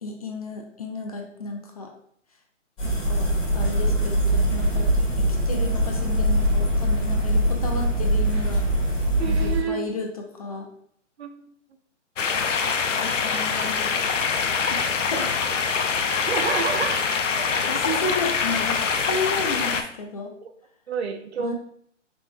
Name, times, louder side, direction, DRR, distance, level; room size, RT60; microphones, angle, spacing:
voice 1, 0.0-1.9 2.8-8.7 9.3-10.7 13.0-13.9 15.1-15.3 17.7-20.3 21.4-21.5, left 2 dB, 30° left, 2 dB, 0.5 m, -33 dB
sound 1, 2.8-9.6, right 1 dB, 15° left, 1.7 m, -22 dB
voice 2, 9.2-10.0 11.2-11.5 16.3-17.0 17.4-17.5 17.9-18.3 20.4-20.5 20.9-21.5, right 6 dB, 60° right, 7 dB, 0.6 m, -29 dB
sound 2, 12.2-19.8, left 5 dB, 80° left, 0.6 m, -24 dB
5.1 x 3.6 x 2.2 m, 0.65 s
figure-of-eight pair, 140°, 37 cm